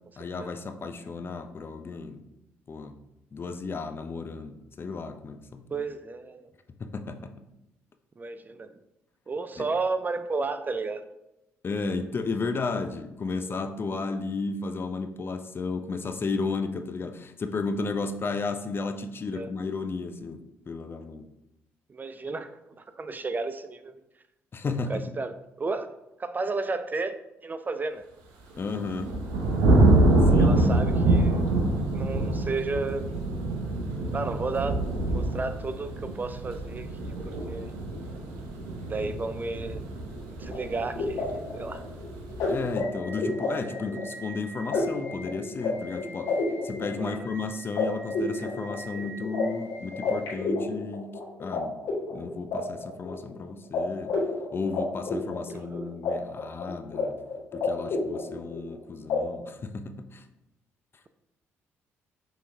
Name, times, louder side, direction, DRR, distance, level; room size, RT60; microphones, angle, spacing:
voice 1, 0.2-2.2 2.7-2.9 3.3-5.8 6.8-7.3 9.6-9.7 11.6-21.2 24.5-25.1 28.6-29.2 30.3-30.5 39.0-39.1 42.5-46.4 46.6-51.8 52.1-54.1 54.5-57.2 57.5-60.2, left 4 dB, 40° left, 8 dB, 0.4 m, -33 dB
voice 2, 5.7-6.5 8.2-8.7 9.3-11.1 19.3-19.5 21.9-23.9 24.9-25.9 26.2-28.0 30.4-31.5 31.9-33.1 34.1-34.8 35.1-37.7 38.9-39.8 40.3-41.8 47.0-47.3 55.5-56.0, right 3 dB, 30° right, 11 dB, 0.3 m, -33 dB
sound 1, 28.5-42.7, right 2 dB, 80° right, 0.6 m, -25 dB
sound 2, 40.4-51.6 51.8-53.4 53.7-53.8 54.1-56.1 56.4-57.0 57.3-58.7 59.1-59.2, left 3 dB, 75° left, 1.5 m, -31 dB
5.6 x 3.1 x 2.6 m, 0.91 s
hypercardioid pair, 50°, 6 cm